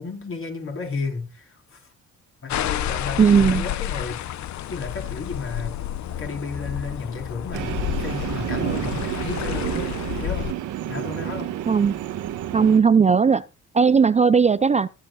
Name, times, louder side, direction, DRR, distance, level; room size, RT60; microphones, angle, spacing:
voice 1, 0.0-1.9 2.4-4.2 4.7-5.8 6.1-10.6 10.9-11.5, left 4 dB, 45° left, 4.2 m, -33 dB
sound 1, 2.5-10.5, left 12 dB, 70° left, 0.8 m, -30 dB
voice 2, 3.2-3.6 11.7-12.0 12.5-13.4 13.7-14.9, right 6 dB, 25° right, 0.4 m, -17 dB
Train, 7.5-12.8, right 12 dB, 80° right, 1.3 m, -30 dB
21.5 x 7.8 x 2.4 m
cardioid pair, 90°, 30 cm